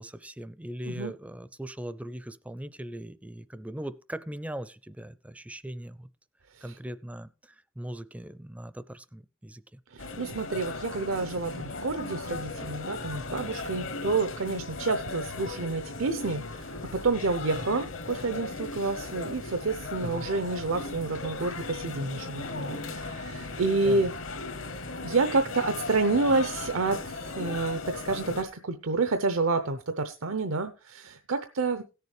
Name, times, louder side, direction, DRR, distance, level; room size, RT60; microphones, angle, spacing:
voice 1, 0.0-6.1 6.6-9.8 20.0-20.3 23.8-24.1, right 1 dB, 5° right, 0.4 m, -40 dB
voice 2, 9.9-24.1 25.0-31.8, right 3 dB, 85° right, 0.7 m, -29 dB
sound 1, 10.0-28.4, left 3 dB, 70° left, 1.3 m, -37 dB
17.0 x 6.8 x 3.2 m
head